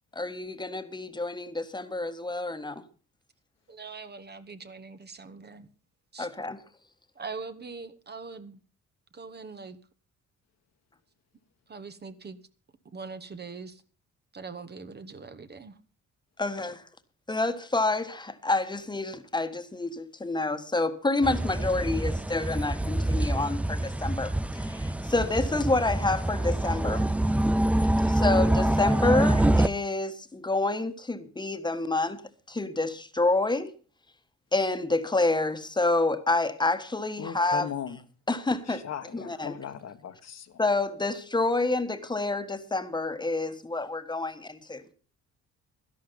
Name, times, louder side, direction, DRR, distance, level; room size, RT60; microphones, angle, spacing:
voice 1, 0.1-2.8 6.2-6.6 16.4-16.8 17.3-27.1 28.1-32.2 32.5-33.7 34.5-37.7 38.3-38.8 39.1-39.5 40.6-44.8, left 2 dB, 15° left, 1.4 m, -28 dB
voice 2, 3.7-5.7 6.1-6.3 7.1-8.6 9.1-9.8 11.7-12.4 12.8-13.8 14.3-15.8, right 4 dB, 35° right, 1.2 m, -42 dB
sound 1, 21.2-29.7, right 1 dB, 5° right, 0.5 m, -25 dB
voice 3, 37.2-38.0 38.7-40.6, left 9 dB, 60° left, 1.4 m, -38 dB
12.0 x 11.5 x 5.3 m
cardioid pair, 90°, 30 cm